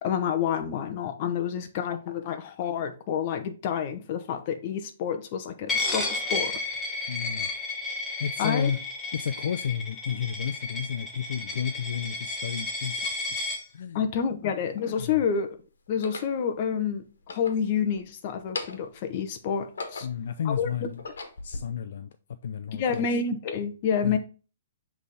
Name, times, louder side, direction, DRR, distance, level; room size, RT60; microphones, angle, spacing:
voice 1, 0.0-6.5 8.4-8.7 13.9-15.6 15.9-17.0 17.3-20.1 20.5-20.9 22.7-24.2, left 7 dB, 35° left, 0.9 m, -28 dB
Coin (dropping), 5.7-13.6, left 3 dB, 10° left, 1.1 m, -32 dB
voice 2, 7.1-7.5 8.2-8.8 9.1-13.4 13.7-14.0 15.0-15.3 20.0-21.0 21.4-22.1 22.4-23.1 24.0-24.2, left 8 dB, 60° left, 0.5 m, -32 dB
sound 1, 13.4-13.5 14.3-15.1 15.9-16.4 17.1-18.1 18.4-19.0 19.5-20.3 20.8-21.6, left 3 dB, 90° left, 1.3 m, -39 dB
7.3 x 3.5 x 4.1 m
hypercardioid pair, 165°, 0 cm